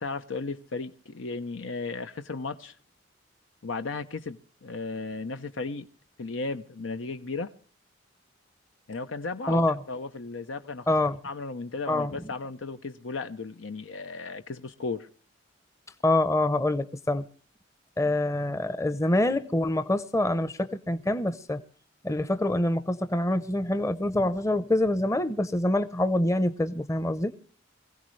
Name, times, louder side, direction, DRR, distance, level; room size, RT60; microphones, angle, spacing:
voice 1, 0.0-2.8 3.6-5.9 6.2-7.5 8.9-9.6 9.9-10.9 11.2-15.1, left 3 dB, 90° left, 0.7 m, -35 dB
voice 2, 10.9-11.2 11.9-12.1 16.0-17.2 18.0-21.6 22.0-27.3, left 1 dB, 15° left, 0.7 m, -25 dB
23.0 x 16.0 x 3.2 m
head